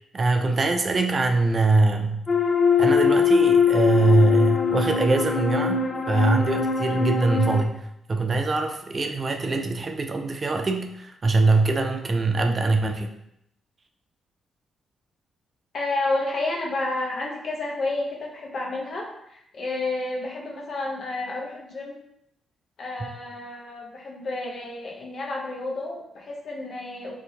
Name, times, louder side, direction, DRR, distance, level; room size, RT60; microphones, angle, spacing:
voice 1, 0.1-2.2 2.8-13.1, right 3 dB, 40° right, 5 dB, 0.4 m, -23 dB
sound 1, 2.3-7.6, left 6 dB, 35° left, 0.4 m, -22 dB
voice 2, 15.7-21.9 22.8-27.1, left 2 dB, 60° left, -1 dB, 0.9 m, -30 dB
2.7 x 2.6 x 3.8 m, 0.78 s
cardioid pair, 65°, 0 cm